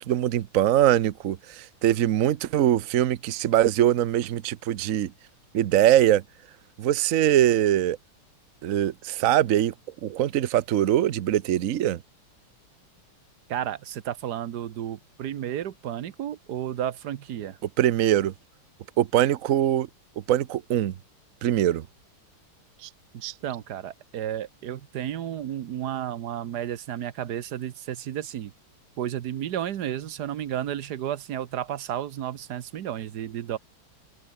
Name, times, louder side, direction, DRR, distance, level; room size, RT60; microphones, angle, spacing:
voice 1, 0.0-5.1 5.5-6.2 6.8-8.0 8.6-9.7 10.0-12.0 17.8-18.3 19.0-19.9 20.3-20.9 21.4-21.8 22.8-22.9 23.2-23.3, right 12 dB, 80° right, 0.7 m, -22 dB
voice 2, 13.5-17.6 23.4-28.5 29.0-33.6, right 10 dB, 60° right, 1.3 m, -32 dB
omnidirectional pair, 2.4 m